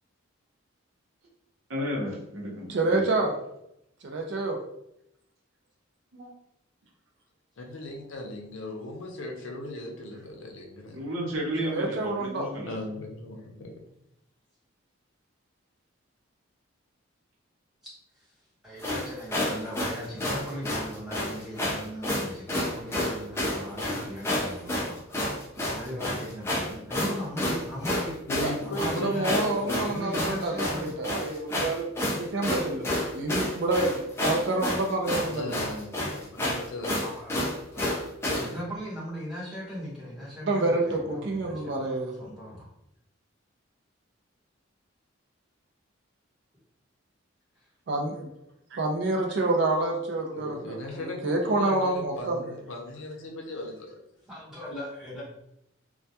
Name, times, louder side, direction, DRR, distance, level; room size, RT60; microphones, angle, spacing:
voice 1, 1.7-3.0 6.1-6.3 10.9-12.7, equal, 80° right, -3 dB, 0.7 m, -32 dB
voice 2, 2.7-3.3 4.0-4.6 11.6-12.5 28.4-28.5 28.8-33.9 34.2-35.7 40.4-42.2 47.9-48.3 48.7-52.4, right 2 dB, 55° right, 2 dB, 0.4 m, -28 dB
voice 3, 7.6-11.1 12.6-13.7 28.3-30.0 35.3-36.9 50.3-54.0, left 1 dB, 75° left, 1 dB, 0.5 m, -38 dB
voice 4, 18.6-25.0 25.7-28.1 28.6-29.3 29.7-30.9 36.9-37.6 38.3-42.7 47.6-47.7 50.9-51.0 54.3-55.2, equal, 5° right, -8 dB, 0.9 m, -38 dB
sound 1, 18.8-38.5, left 1 dB, 10° left, 0.3 m, -30 dB
2.2 x 2.2 x 2.7 m, 0.79 s
head